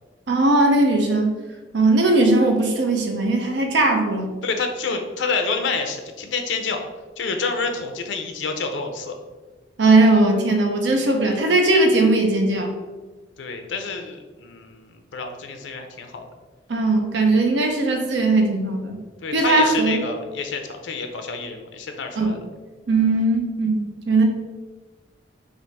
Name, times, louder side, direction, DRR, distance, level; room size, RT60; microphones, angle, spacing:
voice 1, 0.3-1.3 1.7-4.3 9.8-12.7 16.7-19.0 19.3-20.0 22.2-22.3 22.9-24.2, right 2 dB, 70° right, 3 dB, 0.6 m, -19 dB
voice 2, 4.4-6.9 7.2-9.1 13.4-16.3 19.2-22.4, left 4 dB, 85° left, 6 dB, 0.5 m, -28 dB
3.4 x 2.5 x 4.0 m, 1.3 s
head